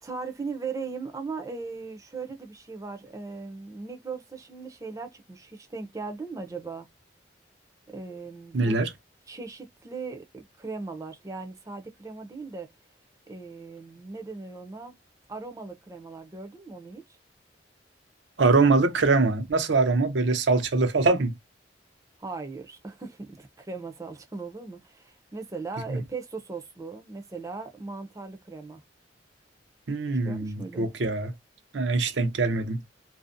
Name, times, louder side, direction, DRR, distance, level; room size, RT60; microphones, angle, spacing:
voice 1, 0.0-6.9 7.9-8.8 9.3-12.7 13.3-15.0 15.3-17.0 22.2-28.8 30.2-30.9, right 4 dB, 20° right, 0.5 m, -38 dB
voice 2, 8.5-8.9 18.4-21.3 25.9-26.0 29.9-31.3 31.7-32.8, right 3 dB, 85° right, 0.6 m, -23 dB
2.5 x 2.1 x 2.4 m
head